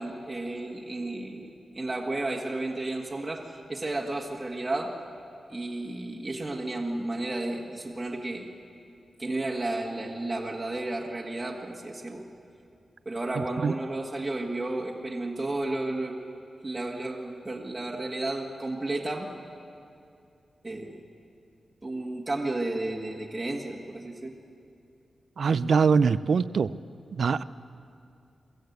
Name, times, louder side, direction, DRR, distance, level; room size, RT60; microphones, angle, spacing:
voice 1, 0.0-4.9 5.5-8.5 9.2-12.2 13.0-16.1 16.6-19.3 20.6-21.0 21.8-24.3, right 2 dB, 20° right, -1 dB, 1.7 m, -32 dB
voice 2, 25.4-26.7 27.1-27.4, right 5 dB, 65° right, 17 dB, 0.4 m, -23 dB
23.0 x 14.5 x 8.1 m, 2.5 s
wide cardioid pair, 105°, 0 cm